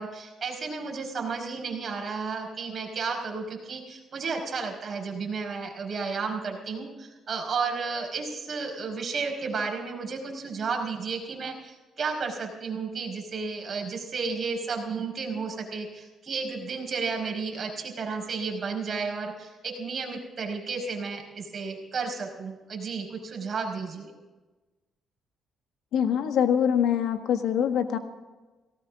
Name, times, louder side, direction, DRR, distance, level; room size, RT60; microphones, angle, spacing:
voice 1, 0.0-24.1, right 4 dB, 45° right, 1 dB, 5.0 m, -32 dB
voice 2, 25.9-28.0, left 8 dB, 80° left, 7 dB, 1.5 m, -24 dB
18.5 x 17.5 x 3.7 m, 1.2 s
cardioid pair, 90°, 0 cm